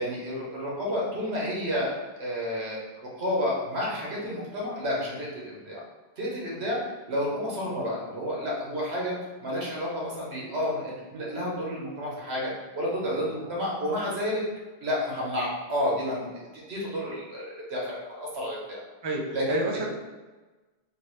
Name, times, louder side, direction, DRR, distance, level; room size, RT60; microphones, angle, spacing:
voice 1, 0.0-2.8 3.2-5.8 6.2-6.8 7.1-14.4 14.8-18.8 19.3-19.6, equal, 85° right, -4 dB, 1.3 m, -30 dB
voice 2, 13.0-13.4 19.0-19.2 19.5-19.9, right 2 dB, 35° right, -1 dB, 0.4 m, -30 dB
3.7 x 2.8 x 3.1 m, 1.2 s
omnidirectional pair, 1.1 m